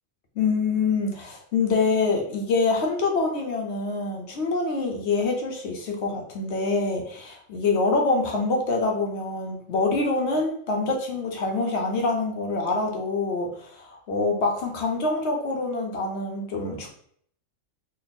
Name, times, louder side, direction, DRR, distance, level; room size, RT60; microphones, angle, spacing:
voice 1, 0.4-16.9, left 3 dB, 60° left, 1 dB, 1.0 m, -25 dB
3.1 x 2.5 x 4.0 m, 0.62 s
omnidirectional pair, 1.4 m